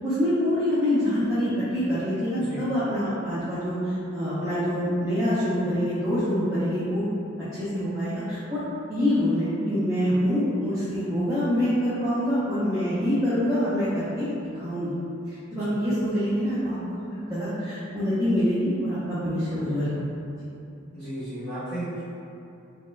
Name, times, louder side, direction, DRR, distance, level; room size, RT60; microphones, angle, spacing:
voice 1, 0.0-7.0 7.5-15.0 15.3-16.8 17.1-20.0, equal, 15° right, -13 dB, 0.5 m, -25 dB
voice 2, 20.9-22.0, right 1 dB, 20° left, -19 dB, 1.4 m, -34 dB
4.1 x 2.0 x 2.4 m, 2.8 s
head